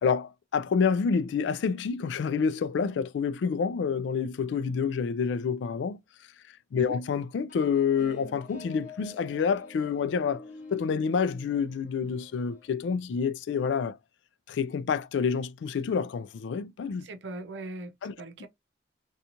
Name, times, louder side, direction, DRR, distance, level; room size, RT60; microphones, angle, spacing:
voice 1, 0.0-6.0 6.7-10.4 10.7-14.0 14.5-17.1 18.0-18.1, left 6 dB, 85° left, 0.3 m, -28 dB
sound 1, 7.5-12.7, left 2 dB, 45° left, 1.0 m, -47 dB
voice 2, 17.0-17.9 18.2-18.5, right 2 dB, 80° right, 0.5 m, -39 dB
2.9 x 2.3 x 2.5 m
head